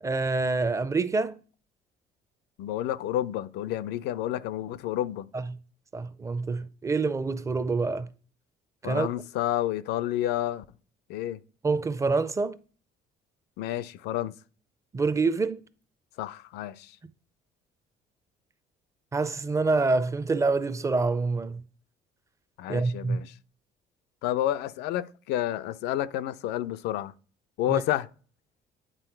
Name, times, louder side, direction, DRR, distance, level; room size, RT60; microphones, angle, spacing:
voice 1, 0.0-1.4 5.3-5.5 5.9-8.1 8.8-9.1 11.6-12.6 14.9-15.6 19.1-21.6 22.7-23.2 27.7-27.8, right 3 dB, 20° right, 0.5 m, -26 dB
voice 2, 2.6-5.3 8.8-10.6 11.1-11.4 13.6-14.3 16.2-16.9 22.6-23.3 24.2-27.1 27.6-28.1, left 13 dB, 85° left, 0.4 m, -30 dB
9.1 x 3.7 x 4.5 m
cardioid pair, 110°, 17 cm